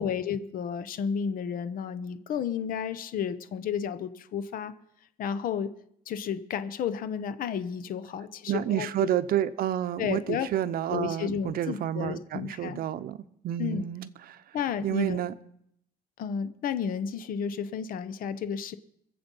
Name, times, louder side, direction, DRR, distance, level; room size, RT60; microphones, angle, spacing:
voice 1, 0.0-4.7 5.2-5.7 6.1-9.1 10.0-10.5 10.9-12.8 13.6-13.9 14.5-15.2 16.2-18.7, left 7 dB, 60° left, 11 dB, 0.8 m, -32 dB
voice 2, 8.5-14.4 14.8-15.3, right 11 dB, 65° right, 12 dB, 0.8 m, -30 dB
23.5 x 7.8 x 5.5 m, 0.72 s
cardioid pair, 165°, 16 cm